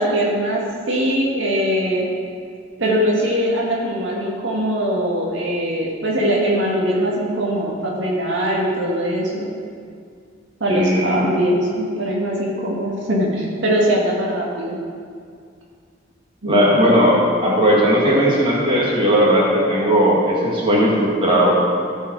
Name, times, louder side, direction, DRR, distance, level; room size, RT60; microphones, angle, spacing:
voice 1, 0.0-2.1 2.8-9.5 10.6-14.8 16.4-16.7, equal, 75° right, -4 dB, 1.9 m, -21 dB
voice 2, 10.7-11.3 16.5-21.5, equal, 25° right, -5 dB, 2.0 m, -17 dB
15.0 x 5.5 x 4.7 m, 2.2 s
head